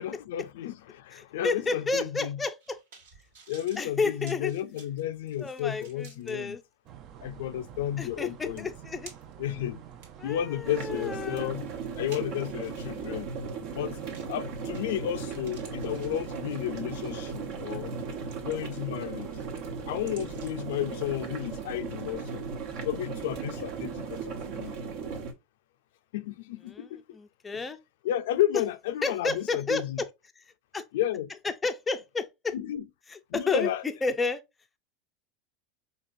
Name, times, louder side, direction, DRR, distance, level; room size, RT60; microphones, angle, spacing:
voice 1, 0.0-2.4 3.5-6.6 7.2-8.7 9.4-9.8 10.2-11.7 12.0-13.3 13.7-14.0 14.3-18.0 18.4-19.3 19.9-22.5 22.8-24.8 26.1-27.2 28.0-30.0 30.9-31.3 32.5-32.8 33.3-33.8, left 12 dB, 80° left, 0.4 m, -32 dB
voice 2, 1.2-2.8 3.8-4.5 5.4-6.6 8.0-9.1 10.2-11.5 26.7-26.9 27.1-27.8 29.0-29.8 30.7-30.9 31.6-32.5 33.1-33.7 34.0-34.4, left 3 dB, 15° left, 0.4 m, -31 dB
sound 1, 2.4-6.3 6.9-7.0 8.1-8.2 8.6-9.5 9.9-13.0 14.1-14.4 14.7-15.1 15.4-16.7 17.3-17.5 18.0-18.9 19.2-20.7 21.0-21.1, right 5 dB, 85° right, 1.8 m, -54 dB
sound 2, 6.8-24.7, right 9 dB, 40° right, 0.5 m, -48 dB
sound 3, 10.6-25.3, right 5 dB, 60° right, 1.1 m, -37 dB
4.5 x 2.8 x 2.5 m
supercardioid pair, 145°, 0 cm